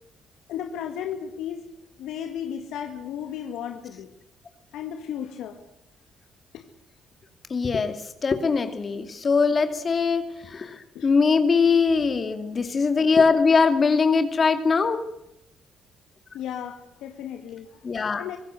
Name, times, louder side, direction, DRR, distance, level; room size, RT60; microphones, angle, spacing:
voice 1, 0.5-1.6 2.0-4.1 4.7-5.6 6.5-6.6 11.0-11.1 13.2-13.7 16.3-17.7 18.0-18.4, left 9 dB, 85° left, 5 dB, 1.9 m, -34 dB
voice 2, 7.5-15.1 17.8-18.3, left 5 dB, 40° left, 8 dB, 2.4 m, -22 dB
25.0 x 16.5 x 7.8 m, 0.82 s
cardioid pair, 90°, 0 cm